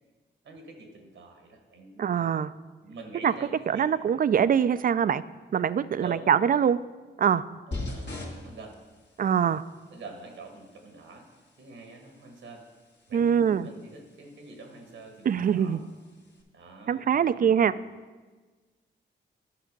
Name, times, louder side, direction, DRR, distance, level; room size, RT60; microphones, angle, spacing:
voice 1, 0.4-2.1 2.8-3.9 6.0-6.2 7.7-8.8 9.9-12.7 13.1-15.8 16.5-17.7, right 3 dB, 85° right, 3 dB, 1.4 m, -46 dB
voice 2, 2.0-2.5 3.2-3.3 3.7-5.2 5.5-6.8 7.2-7.4 9.2-9.6 13.1-13.7 15.3-15.8 16.9-17.7, right 8 dB, 45° right, 15 dB, 0.4 m, -23 dB
sound 1, 7.7-16.4, left 2 dB, 65° left, 1.8 m, -44 dB
10.5 x 5.8 x 5.2 m, 1.4 s
cardioid pair, 55°, 20 cm